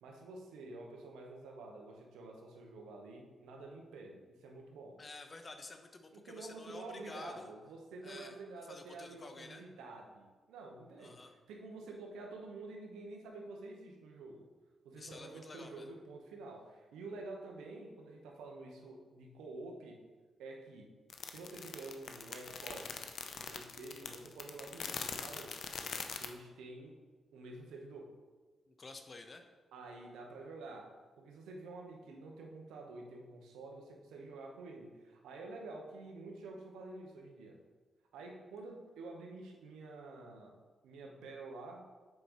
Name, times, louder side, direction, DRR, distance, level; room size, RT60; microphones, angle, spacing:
voice 1, 0.0-5.0 6.1-11.2 11.5-14.4 14.8-20.0 20.4-20.9 21.3-22.9 23.3-25.5 26.2-27.0 27.3-28.1 29.7-30.9 31.2-37.6 38.1-40.5 40.8-41.8, right 3 dB, 90° right, 1 dB, 1.0 m, -49 dB
voice 2, 5.0-7.5 8.0-8.4 8.7-9.6 11.0-11.3 15.0-15.9 28.7-29.4, left 3 dB, 45° left, 6 dB, 0.8 m, -50 dB
sound 1, 21.1-26.3, left 6 dB, 70° left, 0.6 m, -43 dB
7.6 x 5.1 x 3.1 m, 1.3 s
supercardioid pair, 50°, 0 cm